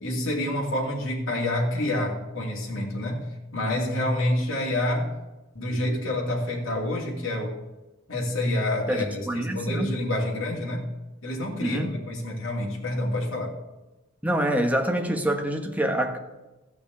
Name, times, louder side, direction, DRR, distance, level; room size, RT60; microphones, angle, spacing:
voice 1, 0.0-3.2 3.5-5.1 5.5-7.5 8.1-10.8 11.2-13.5, left 1 dB, 75° left, -3 dB, 2.7 m, -28 dB
voice 2, 8.9-9.9 11.6-11.9 14.2-16.2, right 1 dB, 5° right, 3 dB, 1.1 m, -26 dB
14.0 x 5.8 x 8.1 m, 1.1 s
head